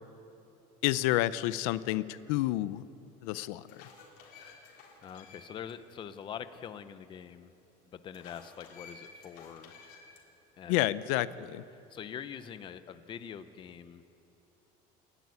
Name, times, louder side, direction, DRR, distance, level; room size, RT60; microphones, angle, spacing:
voice 1, 0.8-2.8 3.2-3.9 10.7-11.6, left 16 dB, 80° left, 16 dB, 0.6 m, -30 dB
sound 1, 2.7-2.8 3.4-5.7 6.1-6.2 8.1-10.2, left 5 dB, 55° left, 4.0 m, -53 dB
voice 2, 5.0-7.5 7.9-9.7 10.6-10.9 11.9-14.0, left 8 dB, 25° left, 11 dB, 0.7 m, -44 dB
27.5 x 12.5 x 9.7 m, 2.9 s
cardioid pair, 170°, 19 cm